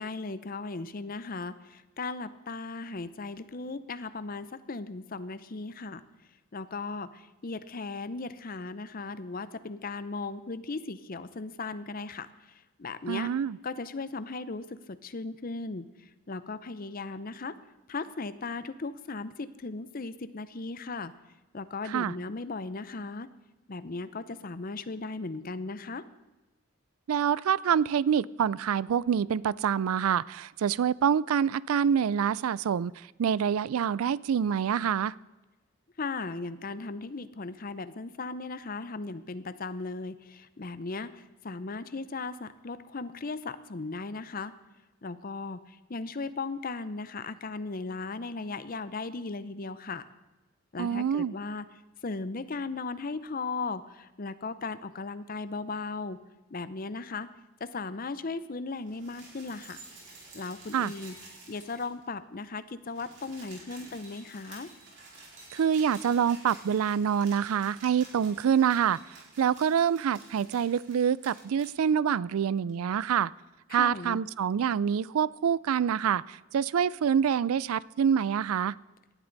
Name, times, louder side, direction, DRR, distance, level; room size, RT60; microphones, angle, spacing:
voice 1, 0.0-6.0 6.5-13.3 13.6-17.6 17.9-21.1 21.5-23.3 23.7-26.0 36.0-44.5 45.0-50.1 50.7-51.7 52.0-56.2 56.5-57.3 57.6-59.8 60.3-61.1 61.5-64.7 73.7-74.2, left 3 dB, 40° left, 14 dB, 0.6 m, -37 dB
voice 2, 13.1-13.6 21.9-22.1 27.1-32.9 33.2-35.1 50.8-51.4 60.7-60.9 65.5-73.3 73.7-78.8, right 8 dB, 85° right, 22 dB, 0.4 m, -26 dB
sound 1, 58.8-62.1 62.4-62.5 62.7-71.7 72.7-72.8, right 3 dB, 55° right, 4.5 m, -51 dB
17.5 x 12.0 x 4.0 m, 1.1 s
head